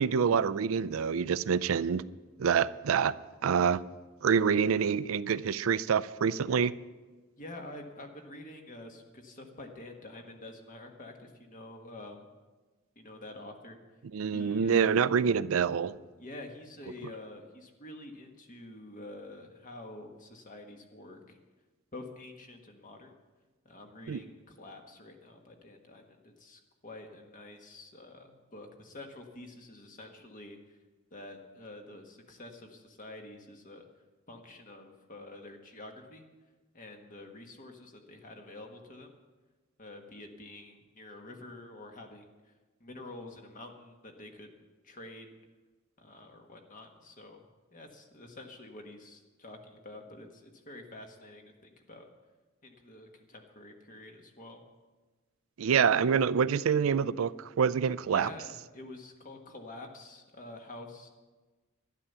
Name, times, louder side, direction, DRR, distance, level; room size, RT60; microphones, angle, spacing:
voice 1, 0.0-2.0 2.4-3.1 3.4-3.8 4.2-6.7 14.1-16.0 24.1-24.2 55.6-58.3, right 6 dB, 85° right, 0.4 m, -26 dB
voice 2, 7.4-12.2 12.9-13.8 14.3-15.1 16.2-21.4 21.9-23.2 23.6-30.6 31.1-33.8 34.3-36.3 36.7-39.2 39.8-42.5 42.8-44.5 44.8-45.3 46.0-47.4 47.7-52.1 52.6-54.6 58.1-61.1, left 2 dB, 40° left, 1.5 m, -48 dB
11.5 x 11.0 x 6.8 m
head